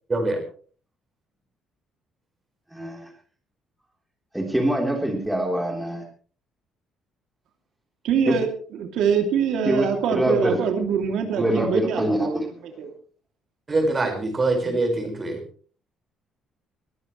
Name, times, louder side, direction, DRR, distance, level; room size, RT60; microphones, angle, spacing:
voice 1, 0.1-0.4 13.7-15.4, right 2 dB, 25° right, 4 dB, 5.0 m, -23 dB
voice 2, 2.7-3.1 4.3-6.0 8.3-8.4 9.7-10.6 11.4-12.5, right 1 dB, 5° right, 1 dB, 3.6 m, -24 dB
voice 3, 8.0-12.3 12.8-12.9, right 7 dB, 70° right, 4 dB, 2.7 m, -24 dB
22.0 x 14.0 x 3.2 m, 0.42 s
cardioid pair, 150°, 0 cm